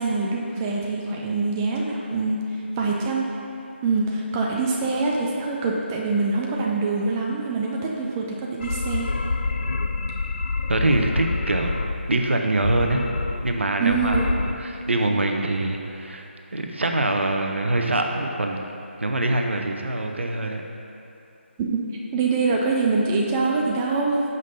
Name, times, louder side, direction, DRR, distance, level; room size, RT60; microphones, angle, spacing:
voice 1, 0.0-2.4 2.8-3.3 3.8-9.1 13.8-14.3 21.6-21.8 22.1-24.2, right 3 dB, 15° right, -2 dB, 0.4 m, -24 dB
sound 1, 8.6-12.1 12.6-13.6 13.9-14.5, left 3 dB, 55° left, 0.4 m, -27 dB
voice 2, 10.7-13.1 13.4-18.6 19.0-20.6, right 2 dB, 70° right, 3 dB, 0.7 m, -24 dB
11.0 x 5.3 x 2.8 m, 2.7 s
figure-of-eight pair, 155°, 7 cm